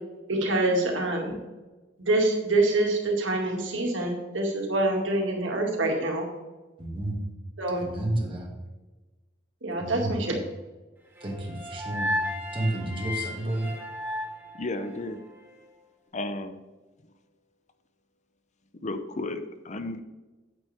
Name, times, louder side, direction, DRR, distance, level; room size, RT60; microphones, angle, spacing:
voice 1, 0.3-1.4 2.0-6.3 7.6-7.9 9.6-10.4, right 2 dB, 85° right, 0 dB, 2.3 m, -26 dB
voice 2, 6.8-7.2 7.8-8.5 9.8-10.2 11.2-13.7, right 1 dB, 30° right, -1 dB, 2.3 m, -31 dB
sound 1, 11.2-15.4, left 1 dB, 10° right, 1.5 m, -34 dB
voice 3, 14.6-15.2 16.1-16.6 18.8-20.0, left 2 dB, 40° left, 9 dB, 0.7 m, -33 dB
9.2 x 8.4 x 3.5 m, 1.2 s
head